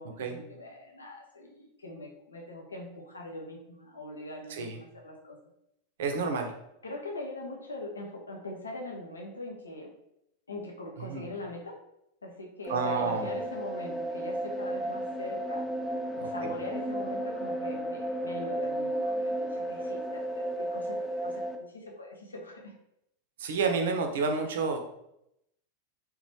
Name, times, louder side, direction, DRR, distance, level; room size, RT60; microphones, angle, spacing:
voice 1, 0.0-5.4 6.8-9.9 10.5-11.8 12.2-15.6 16.2-22.7 24.4-24.5, left 1 dB, 75° left, 0 dB, 0.9 m, -41 dB
voice 2, 6.0-6.5 11.0-11.2 12.7-13.3 16.2-16.3 23.4-24.8, right 4 dB, 60° right, 4 dB, 0.6 m, -29 dB
sound 1, 12.7-21.6, right 1 dB, 5° left, 0.5 m, -33 dB
3.7 x 3.0 x 3.0 m, 0.79 s
figure-of-eight pair, 90°, 0 cm